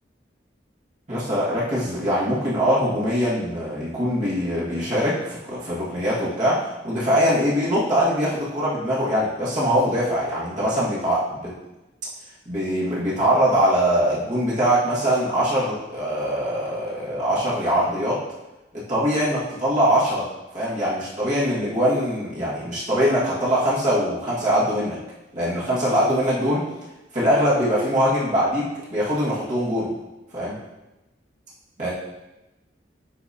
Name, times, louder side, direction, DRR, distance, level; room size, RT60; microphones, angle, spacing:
voice 1, 1.1-11.5 12.5-18.2 18.9-20.2 20.5-25.0 25.3-26.6 27.1-29.9 30.3-30.5 31.8-31.9, equal, 40° right, -8 dB, 1.8 m, -22 dB
10.0 x 4.0 x 2.8 m, 1.0 s
head